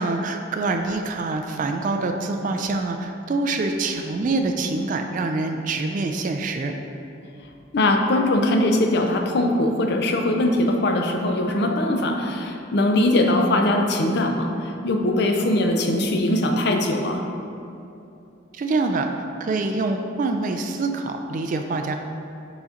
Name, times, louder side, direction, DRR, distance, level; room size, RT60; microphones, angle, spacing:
voice 1, 0.0-6.7 18.5-21.9, right 3 dB, 40° right, 4 dB, 0.3 m, -25 dB
voice 2, 7.7-17.2, left 1 dB, 55° left, 3 dB, 0.5 m, -21 dB
4.9 x 4.0 x 5.0 m, 2.7 s
head